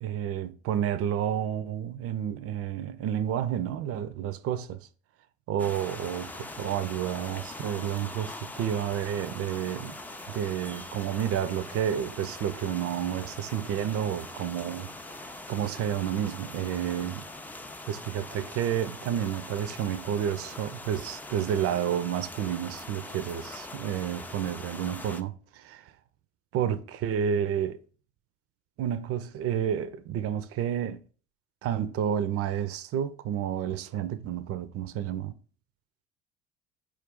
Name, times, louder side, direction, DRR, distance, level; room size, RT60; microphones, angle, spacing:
voice 1, 0.0-4.9 5.5-10.0 10.3-17.3 17.9-25.9 26.5-27.8 28.8-31.0 31.6-35.3, right 9 dB, 50° right, 0.5 m, -30 dB
sound 1, 5.6-25.2, left 2 dB, 5° left, 0.4 m, -42 dB
4.6 x 2.5 x 4.5 m
hypercardioid pair, 60°, 31 cm